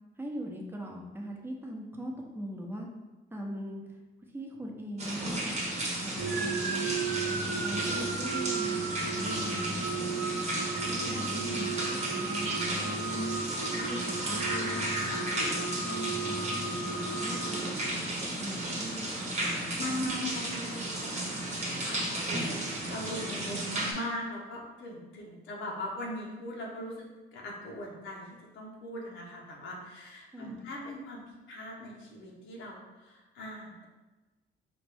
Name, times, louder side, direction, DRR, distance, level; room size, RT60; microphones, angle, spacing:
voice 1, 0.2-2.9 3.3-4.0 4.3-5.6 6.0-6.9 7.3-10.5 10.9-13.3 13.7-16.4 16.8-20.3 30.3-30.7, equal, 10° right, 0 dB, 0.7 m, -41 dB
sound 1, 5.0-23.9, right 1 dB, 35° right, 0.9 m, -34 dB
sound 2, 6.2-18.1, right 4 dB, 75° right, 0.8 m, -35 dB
voice 2, 11.1-11.6 19.8-33.9, left 1 dB, 75° left, -2 dB, 1.0 m, -40 dB
4.2 x 2.5 x 3.4 m, 1.2 s
cardioid pair, 90°, 20 cm